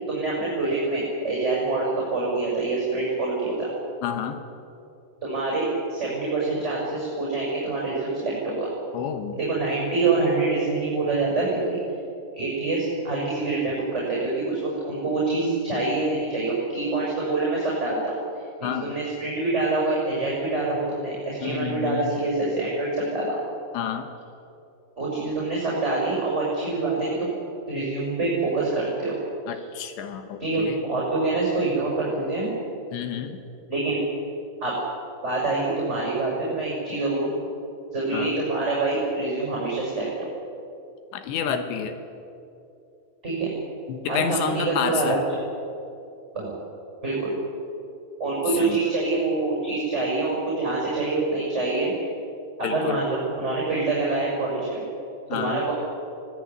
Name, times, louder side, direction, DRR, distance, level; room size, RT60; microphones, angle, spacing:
voice 1, 0.1-3.7 5.2-8.7 9.3-11.8 12.3-23.4 25.0-27.4 27.7-29.2 29.5-29.6 30.4-32.5 33.7-34.0 34.6-34.7 35.2-37.3 37.9-40.1 43.2-43.5 44.0-45.2 46.3-46.5 47.0-47.3 48.2-51.9 52.6-54.8 55.3-55.7, right 3 dB, 15° right, -4 dB, 6.5 m, -26 dB
voice 2, 4.0-4.4 8.9-9.4 18.6-19.0 21.4-22.1 23.7-24.1 29.5-30.8 32.9-33.4 38.1-38.3 41.1-42.0 43.9-45.2 48.6-48.8 52.6-53.0 55.3-55.6, left 8 dB, 80° left, 8 dB, 3.4 m, -29 dB
25.5 x 17.5 x 9.7 m, 2.6 s
omnidirectional pair, 5.2 m